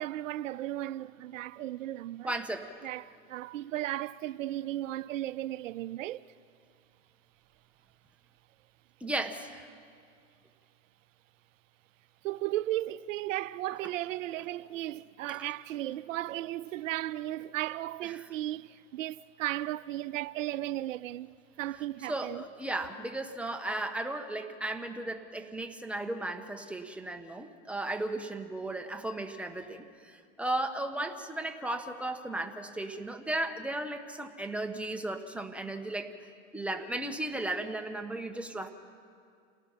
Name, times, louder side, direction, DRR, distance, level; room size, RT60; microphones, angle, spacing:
voice 1, 0.0-2.3 2.8-6.3 12.2-22.4, right 14 dB, 80° right, 0.5 m, -35 dB
voice 2, 2.2-2.8 9.0-9.7 15.3-15.5 18.1-18.3 22.1-36.1 36.5-38.7, right 1 dB, 5° right, 1.3 m, -35 dB
28.0 x 19.0 x 5.7 m
hypercardioid pair, 110°, 38 cm